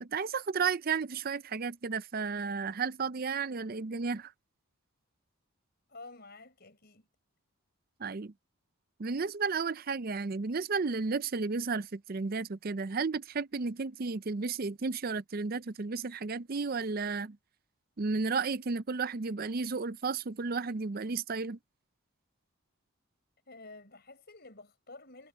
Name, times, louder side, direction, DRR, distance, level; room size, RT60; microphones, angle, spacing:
voice 1, 0.0-4.3 8.0-8.3 9.0-17.4 18.0-21.6, right 4 dB, 40° right, 0.5 m, -33 dB
voice 2, 5.9-7.1 23.5-25.3, left 3 dB, 45° left, 6.0 m, -50 dB
head